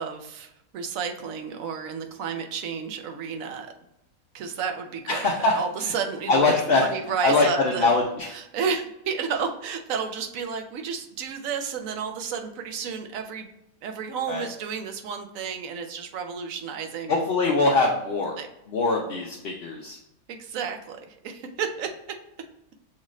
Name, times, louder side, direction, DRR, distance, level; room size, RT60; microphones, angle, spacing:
voice 1, 0.0-3.7 4.3-7.9 8.3-13.5 13.8-17.2 18.4-18.5 20.3-21.9, right 6 dB, 70° right, 5 dB, 1.0 m, -31 dB
voice 2, 5.1-5.9 6.3-6.9 7.2-8.3 14.3-14.4 17.1-18.4 18.7-20.0, left 3 dB, 55° left, -1 dB, 0.7 m, -23 dB
6.3 x 2.5 x 3.1 m, 0.81 s
omnidirectional pair, 1.5 m